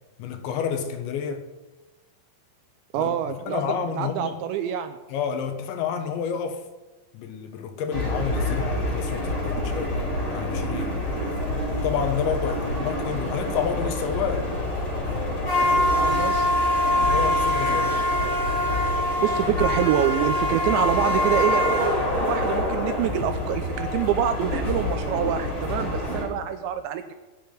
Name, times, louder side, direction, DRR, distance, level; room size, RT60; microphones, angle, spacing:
voice 1, 0.2-1.5 2.9-3.1 3.5-4.4 5.1-6.6 7.1-9.9 10.3-11.0 11.8-14.5 17.1-18.0, left 7 dB, 75° left, 3.4 m, -29 dB
voice 2, 2.9-5.0 15.9-16.5 19.2-27.1, right 10 dB, 80° right, 2.9 m, -26 dB
sound 1, 7.9-26.2, left 1 dB, 35° left, 5.5 m, -25 dB
19.5 x 7.0 x 9.5 m
omnidirectional pair, 5.4 m